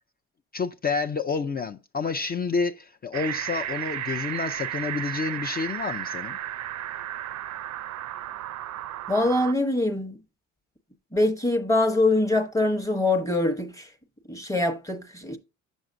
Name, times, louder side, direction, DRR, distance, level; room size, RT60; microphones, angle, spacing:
voice 1, 0.5-6.4, left 4 dB, 30° left, 0.5 m, -29 dB
sound 1, 3.1-9.5, right 12 dB, 70° right, 0.5 m, -33 dB
voice 2, 9.1-10.2 11.1-13.9 14.3-15.4, left 2 dB, 10° left, 0.9 m, -24 dB
7.9 x 6.3 x 2.6 m
cardioid pair, 90°, 30 cm